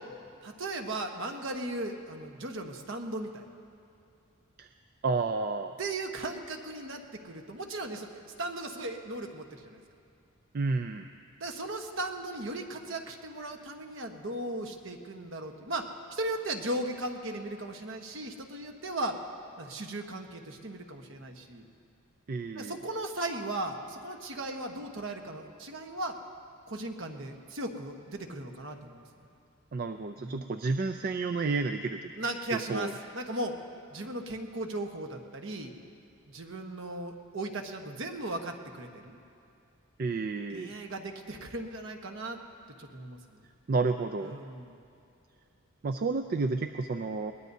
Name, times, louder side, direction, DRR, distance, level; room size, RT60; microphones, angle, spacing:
voice 1, 0.4-3.5 5.8-9.8 11.4-19.2 19.6-21.6 22.5-26.2 26.7-29.0 30.2-30.5 32.2-33.6 33.9-35.7 36.3-39.2 40.5-42.4 42.8-43.4 44.2-44.8, right 2 dB, 60° right, 4 dB, 1.2 m, -37 dB
voice 2, 5.0-5.8 10.5-11.1 22.3-22.8 29.7-32.1 32.5-32.9 40.0-40.7 43.7-44.4 45.8-47.3, right 3 dB, 45° right, 7 dB, 0.4 m, -31 dB
22.0 x 19.5 x 2.7 m, 2.6 s
head